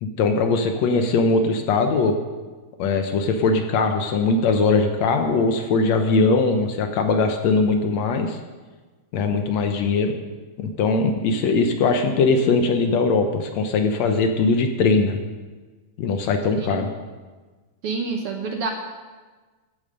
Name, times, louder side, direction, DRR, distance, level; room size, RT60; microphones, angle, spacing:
voice 1, 0.0-2.2 2.8-8.4 9.1-10.1 10.6-15.2 16.0-16.9, left 3 dB, 70° left, 5 dB, 1.9 m, -20 dB
voice 2, 17.8-18.7, right 4 dB, 65° right, 3 dB, 1.6 m, -28 dB
14.0 x 8.9 x 6.5 m, 1.4 s
omnidirectional pair, 3.5 m